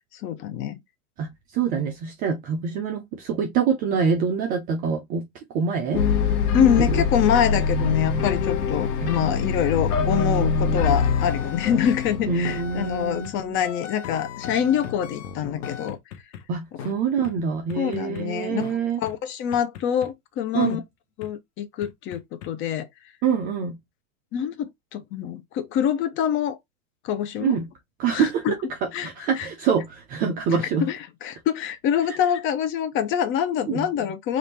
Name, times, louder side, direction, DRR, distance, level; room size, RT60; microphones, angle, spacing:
voice 1, 0.2-0.8 6.5-16.0 17.8-18.6 19.0-20.8 21.2-22.9 24.3-26.6 27.0-27.5 28.1-28.5 28.9-29.1 29.4-29.5 30.6-34.4, left 9 dB, 30° left, 0.6 m, -25 dB
voice 2, 1.2-5.3 5.5-6.0 6.5-7.0 9.0-9.2 12.3-13.6 16.5-19.0 20.5-20.8 23.2-23.8 27.4-27.7 28.0-30.9 33.7-33.9, right 6 dB, 20° right, 0.4 m, -25 dB
sound 1, 5.9-13.2, left 5 dB, 80° left, 1.2 m, -24 dB
sound 2, 10.8-13.3 13.6-16.4 16.8-16.9 17.2-17.3 17.7-18.2 18.6-18.7 19.1-19.2 19.5-20.1 20.6-20.7 21.2-21.3 21.8-22.5, left 8 dB, 55° left, 1.0 m, -37 dB
3.5 x 2.5 x 4.2 m
hypercardioid pair, 125°, 45 cm